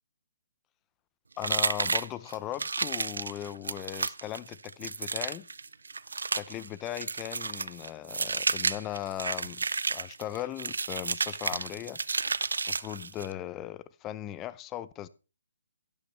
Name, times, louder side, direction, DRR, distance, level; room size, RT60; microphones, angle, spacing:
voice 1, 1.4-5.5 6.4-9.6 9.9-12.0 12.7-15.1, left 13 dB, 15° left, 0.6 m, -38 dB
sound 1, 1.4-13.3, right 4 dB, 85° right, 0.5 m, -32 dB
12.0 x 11.5 x 3.3 m
hypercardioid pair, 155°, 0 cm